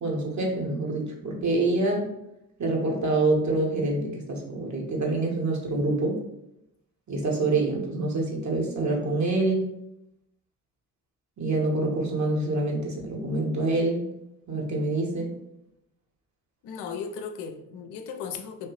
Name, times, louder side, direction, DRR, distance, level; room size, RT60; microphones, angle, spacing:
voice 1, 0.0-2.0 2.6-6.2 7.1-9.7 11.4-14.0 14.5-15.3, right 2 dB, 40° right, -1 dB, 1.1 m, -26 dB
voice 2, 16.6-18.7, left 6 dB, 60° left, 6 dB, 0.6 m, -36 dB
3.2 x 2.7 x 3.0 m, 0.84 s
hypercardioid pair, 45°, 45 cm